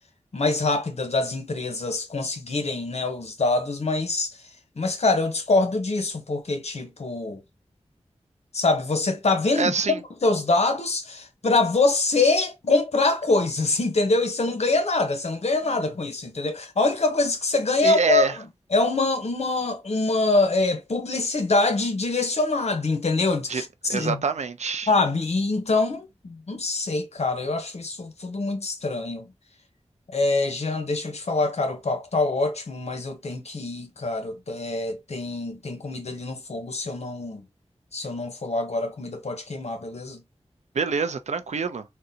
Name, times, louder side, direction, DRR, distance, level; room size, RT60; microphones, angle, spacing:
voice 1, 0.3-4.4 4.8-7.4 8.5-18.3 18.7-24.2 24.9-29.3 30.1-37.4 37.9-40.2, left 3 dB, 70° left, 0.9 m, -24 dB
voice 2, 9.6-10.0 17.8-18.3 23.5-23.6 23.9-24.9 40.7-41.8, right 5 dB, 80° right, 0.5 m, -25 dB
3.7 x 2.2 x 2.7 m
wide cardioid pair, 80°, 12 cm